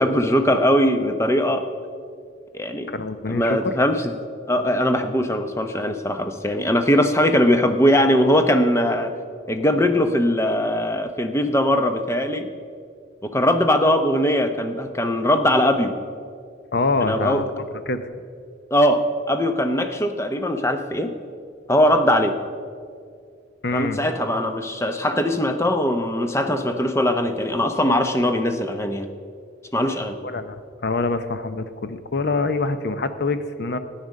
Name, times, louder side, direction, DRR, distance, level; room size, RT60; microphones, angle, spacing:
voice 1, 0.0-1.6 2.5-2.9 3.3-4.1 4.5-9.1 9.5-12.5 13.2-16.0 17.0-17.4 18.7-21.1 21.7-22.4 23.7-29.1 29.7-30.2, left 1 dB, 15° left, 7 dB, 0.7 m, -20 dB
voice 2, 2.9-3.7 16.7-18.1 23.6-24.0 30.2-33.8, left 3 dB, 50° left, 10 dB, 0.7 m, -25 dB
13.0 x 9.7 x 6.4 m, 2.2 s
head